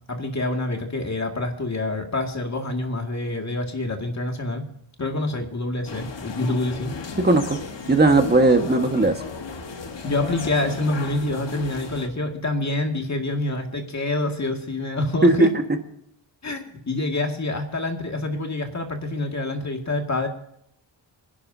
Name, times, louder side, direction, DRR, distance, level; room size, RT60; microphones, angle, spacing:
voice 1, 0.1-4.7 5.0-7.0 10.0-15.5 16.4-20.3, left 2 dB, 35° left, 3 dB, 2.3 m, -26 dB
sound 1, 5.9-12.1, left 5 dB, 60° left, 1.6 m, -35 dB
voice 2, 7.2-7.6 7.9-9.1 15.2-15.5, right 2 dB, 20° right, 5 dB, 1.6 m, -17 dB
24.5 x 11.0 x 2.8 m, 0.73 s
wide cardioid pair, 125°, 48 cm